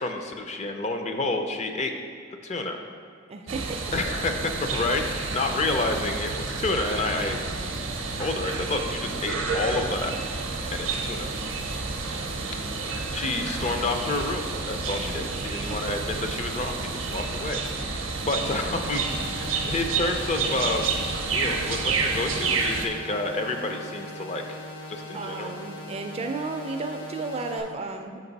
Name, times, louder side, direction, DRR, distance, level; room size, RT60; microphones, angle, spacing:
voice 1, 0.0-1.9 2.4-2.8 3.9-7.4 8.2-10.1 10.7-11.3 13.1-19.0 19.4-20.9 21.2-24.6 24.9-25.6, left 2 dB, 35° left, 5 dB, 0.4 m, -29 dB
voice 2, 3.3-3.8 25.1-28.2, right 3 dB, 30° right, 5 dB, 0.3 m, -33 dB
sound 1, 3.5-22.9, right 4 dB, 70° right, 0.7 m, -30 dB
sound 2, 18.6-27.6, left 1 dB, 70° left, 1.4 m, -40 dB
5.9 x 5.2 x 4.0 m, 2.1 s
head